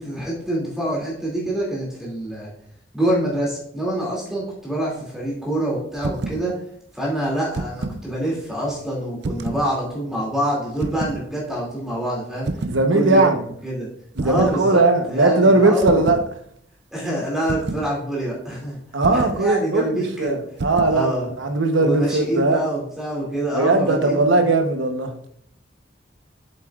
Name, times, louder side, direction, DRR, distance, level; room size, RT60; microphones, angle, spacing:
voice 1, 0.0-2.5 2.9-6.5 6.9-12.6 12.9-13.2 13.6-13.9 14.2-16.1 16.9-18.8 19.1-20.4 20.9-21.3 21.8-24.4, right 1 dB, 5° right, -5 dB, 2.5 m, -26 dB
sound 1, 6.0-6.4 7.3-8.0 9.2-9.7 10.8-11.2 12.5-12.8 14.2-14.6 15.8-16.3 17.5-17.9 19.0-19.4 20.6-21.0, right 3 dB, 60° right, 0.5 m, -28 dB
voice 2, 12.7-13.4 14.2-16.2 18.9-22.6 23.5-25.2, right 2 dB, 85° right, 5 dB, 1.0 m, -19 dB
7.7 x 7.6 x 2.4 m, 0.70 s
head